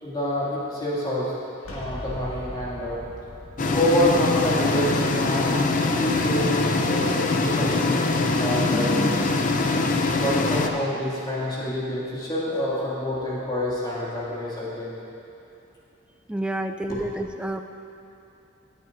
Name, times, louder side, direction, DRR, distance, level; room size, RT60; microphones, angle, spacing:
voice 1, 0.0-1.3 1.7-3.0 3.7-9.0 10.1-14.9 16.9-17.0, left 1 dB, 20° left, -8 dB, 2.4 m, -27 dB
sound 1, 1.6-7.3, equal, 80° left, 1.8 m, -42 dB
sound 2, 3.6-10.7, left 3 dB, 40° left, 0.6 m, -23 dB
voice 2, 8.7-9.4 16.3-17.6, right 1 dB, 5° right, 6 dB, 0.3 m, -30 dB
18.0 x 9.3 x 2.7 m, 2.9 s
head